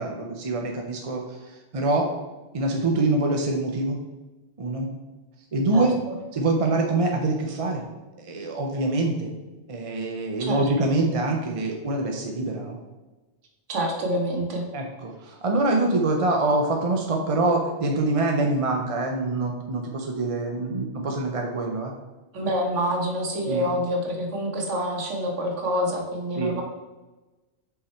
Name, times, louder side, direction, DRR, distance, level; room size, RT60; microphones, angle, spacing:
voice 1, 0.0-2.1 2.5-4.0 4.6-4.9 5.5-6.0 6.3-7.9 8.2-9.3 9.7-12.8 14.7-21.9 23.5-23.7 26.3-26.6, right 2 dB, 40° right, 1 dB, 0.6 m, -25 dB
voice 2, 5.7-6.1 10.4-10.6 13.7-14.7 22.3-26.6, equal, 85° right, 1 dB, 1.5 m, -27 dB
5.7 x 4.2 x 4.3 m, 1.1 s
omnidirectional pair, 1.2 m